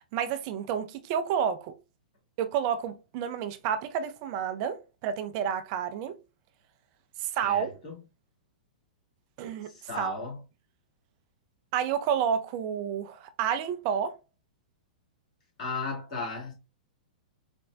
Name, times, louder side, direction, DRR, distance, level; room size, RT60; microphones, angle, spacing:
voice 1, 0.1-1.7 2.4-6.2 7.2-7.7 9.4-9.7 10.0-10.1 11.7-14.1, right 8 dB, 45° right, 0.4 m, -30 dB
voice 2, 7.4-7.9 9.7-10.4 15.6-16.5, left 3 dB, 55° left, 1.9 m, -35 dB
4.2 x 2.1 x 2.5 m
figure-of-eight pair, 105°, 4 cm